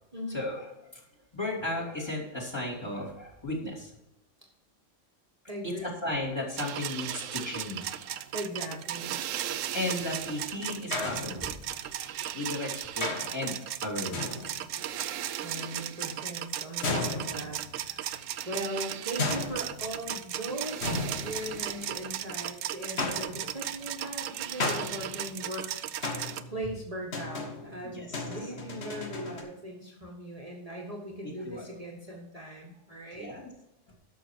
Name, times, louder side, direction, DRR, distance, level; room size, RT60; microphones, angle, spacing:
voice 1, 0.3-0.9 1.3-3.9 5.8-8.2 9.3-9.4 9.7-14.4 14.9-15.3 27.8-28.4 31.2-31.7 33.1-33.5, left 2 dB, 20° left, -2 dB, 2.9 m, -36 dB
voice 2, 5.5-5.9 8.3-9.2 15.4-18.1 18.4-25.7 26.1-33.3, right 1 dB, 30° right, -2 dB, 1.5 m, -39 dB
sound 1, 6.6-26.4, right 11 dB, 85° right, 1.0 m, -36 dB
sound 2, 10.0-10.4 10.9-11.9 13.0-13.5 14.1-14.8 16.8-17.9 19.2-20.2 20.8-22.0 23.0-23.7 24.6-25.5 26.0-26.6 27.1-29.4, left 3 dB, 60° left, 1.7 m, -35 dB
11.5 x 6.5 x 4.6 m, 0.91 s
omnidirectional pair, 1.3 m